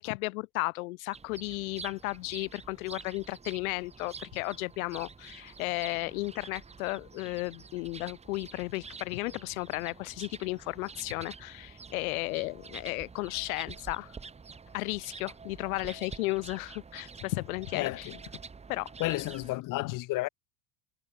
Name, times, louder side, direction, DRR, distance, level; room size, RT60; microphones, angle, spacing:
voice 1, 0.0-14.1 14.7-18.1 18.7-18.9 19.8-19.9, left 22 dB, 80° left, 2.1 m, -34 dB
sound 1, 1.1-19.6, right 5 dB, 15° right, 2.7 m, -48 dB
voice 2, 17.7-18.2 19.0-20.3, left 19 dB, 50° left, 2.3 m, -32 dB
supercardioid pair, 130°, 42 cm